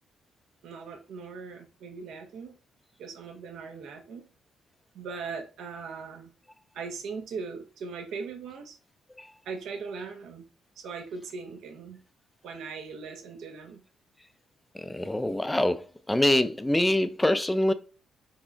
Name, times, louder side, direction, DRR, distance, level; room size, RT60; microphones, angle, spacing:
voice 1, 0.6-2.6 3.0-4.3 4.9-6.3 6.7-8.8 9.5-10.4 10.8-12.0 12.4-13.8, right 5 dB, 75° right, 0.7 m, -39 dB
voice 2, 14.7-17.7, left 1 dB, 10° left, 0.3 m, -25 dB
3.6 x 3.2 x 2.4 m
cardioid pair, 90°, 0 cm